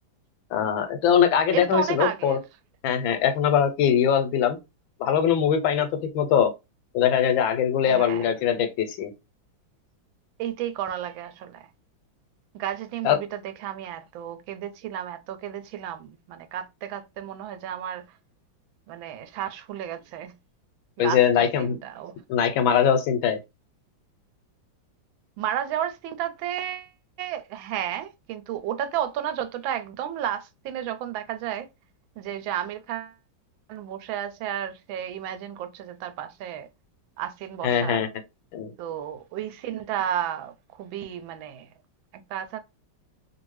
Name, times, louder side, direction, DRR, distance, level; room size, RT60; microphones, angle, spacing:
voice 1, 0.5-2.4 2.8-4.6 5.0-5.9 6.1-6.5 6.9-9.1 13.0-13.2 21.0-21.8 22.3-23.4 37.6-38.1 38.5-38.7, left 8 dB, 85° left, 1.5 m, -22 dB
voice 2, 1.5-2.4 7.9-8.3 10.4-11.7 12.5-18.0 18.9-20.3 21.0-22.1 25.4-26.9 27.2-31.7 32.2-33.2 33.7-36.7 37.2-38.0 38.8-41.7 42.3-42.6, right 10 dB, 85° right, 1.4 m, -32 dB
3.1 x 2.6 x 3.1 m
omnidirectional pair, 2.1 m